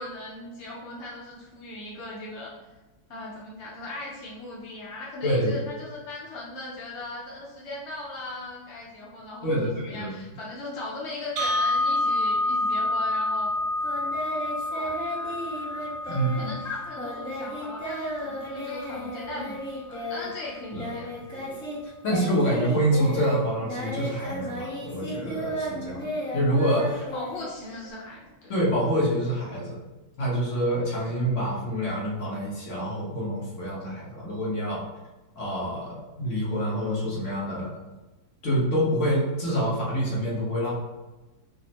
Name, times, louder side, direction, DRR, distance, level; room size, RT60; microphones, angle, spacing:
voice 1, 0.0-2.5 3.1-13.5 14.6-14.9 16.0-21.1 27.1-28.5, left 2 dB, 65° left, -5 dB, 0.6 m, -38 dB
voice 2, 5.2-5.5 9.4-10.1 16.1-16.5 20.7-20.8 21.3-21.5 21.8-27.0 28.5-29.8 30.2-34.8 35.3-37.7 38.4-40.7, equal, 45° left, -5 dB, 1.2 m, -26 dB
sound 1, 11.4-19.4, left 2 dB, 65° right, 1.1 m, -29 dB
Singing, 13.8-21.8 22.0-27.9, equal, 5° left, 0.6 m, -34 dB
5.1 x 2.1 x 2.8 m, 1.1 s
omnidirectional pair, 2.1 m